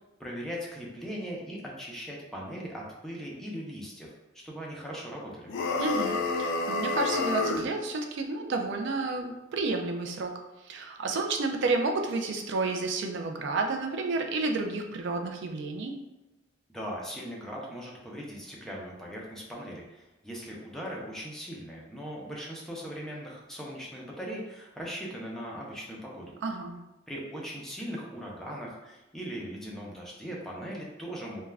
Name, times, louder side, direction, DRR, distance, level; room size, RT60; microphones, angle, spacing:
voice 1, 0.2-4.1 4.4-5.5 16.7-26.3 27.1-31.4, equal, ahead, -3 dB, 0.5 m, -39 dB
sound 1, 5.5-7.7, left 3 dB, 65° left, 0.3 m, -29 dB
voice 2, 5.8-10.4 10.6-16.0 26.4-26.8, right 3 dB, 65° right, 4 dB, 0.4 m, -31 dB
2.4 x 2.2 x 3.2 m, 1.0 s
head